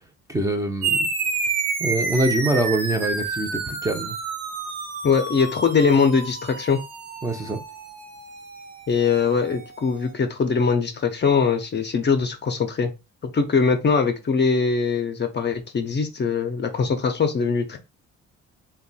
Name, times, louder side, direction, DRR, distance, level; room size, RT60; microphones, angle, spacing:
voice 1, 0.3-1.1 1.8-4.2 7.2-7.6, right 2 dB, 10° right, 0.6 m, -24 dB
sound 1, 0.8-9.7, right 4 dB, 55° right, 1.1 m, -29 dB
voice 2, 5.0-6.8 8.9-12.9 13.2-17.8, left 5 dB, 35° left, 0.6 m, -22 dB
2.6 x 2.3 x 4.0 m
cardioid pair, 90°, 30 cm